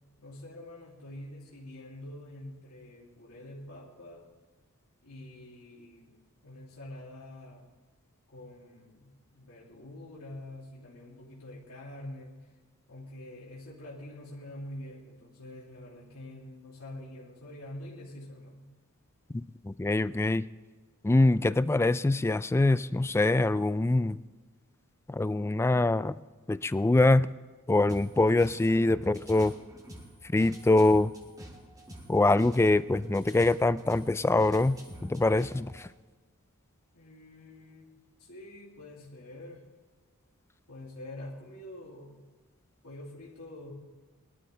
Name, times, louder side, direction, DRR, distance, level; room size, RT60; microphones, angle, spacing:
voice 1, 0.2-4.3 5.0-6.1 6.4-7.7 8.3-12.5 12.9-18.8 36.9-39.7 40.7-42.3 42.8-43.7, left 1 dB, 80° left, -6 dB, 2.9 m, -46 dB
voice 2, 19.3-20.4 21.0-24.2 25.1-26.2 26.5-27.3 27.7-29.5 30.2-31.1 32.1-35.9, left 2 dB, 10° left, 16 dB, 0.3 m, -24 dB
sound 1, 27.9-35.9, equal, 15° right, 2.3 m, -48 dB
22.0 x 12.5 x 3.4 m, 1.4 s
head